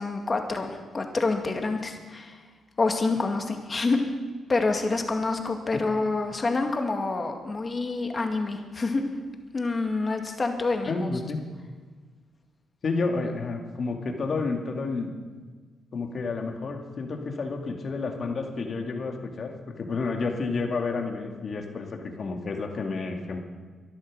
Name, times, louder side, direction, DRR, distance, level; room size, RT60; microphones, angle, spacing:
voice 1, 0.0-2.4 2.8-4.0 4.5-9.0 9.5-11.1, left 3 dB, 35° left, 4 dB, 2.2 m, -27 dB
voice 2, 10.9-11.4 12.8-15.1 15.9-23.4, left 3 dB, 55° left, 3 dB, 2.2 m, -30 dB
13.5 x 11.5 x 6.3 m, 1.4 s
supercardioid pair, 55°, 0 cm